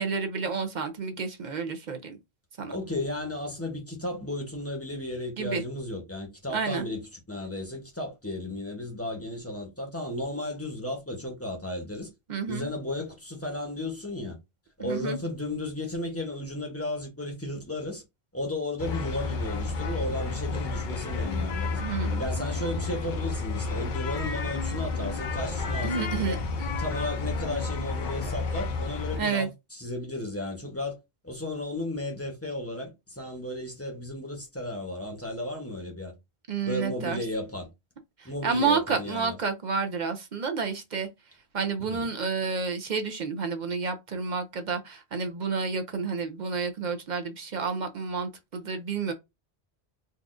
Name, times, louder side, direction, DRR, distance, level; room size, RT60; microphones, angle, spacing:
voice 1, 0.0-2.2 2.6-2.7 5.4-5.6 6.5-6.8 12.3-12.7 14.8-15.2 21.8-22.3 25.8-26.4 29.2-29.5 36.5-37.2 38.2-41.1 41.5-49.1, right 5 dB, 55° right, 0.6 m, -30 dB
voice 2, 2.7-12.1 12.5-14.4 14.8-18.0 18.3-21.8 22.2-26.4 26.8-31.0 31.2-36.1 36.6-37.7 38.2-39.4 41.8-42.1, left 1 dB, 15° left, 0.8 m, -34 dB
sound 1, 18.8-29.2, left 3 dB, 55° left, 0.7 m, -31 dB
4.0 x 2.4 x 2.4 m
omnidirectional pair, 1.1 m